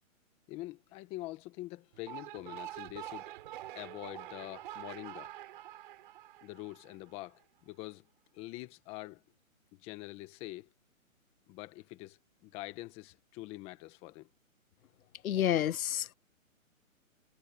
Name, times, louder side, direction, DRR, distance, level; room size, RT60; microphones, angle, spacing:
voice 1, 0.5-3.3 3.7-5.3 6.4-8.1 8.3-9.2 9.7-10.7 11.5-14.3, left 19 dB, 15° left, 1.4 m, -45 dB
sound 1, 1.9-7.3, right 14 dB, 35° right, 4.3 m, -46 dB
voice 2, 15.2-16.1, left 11 dB, 85° left, 0.6 m, -29 dB
hypercardioid pair, 160°, 41 cm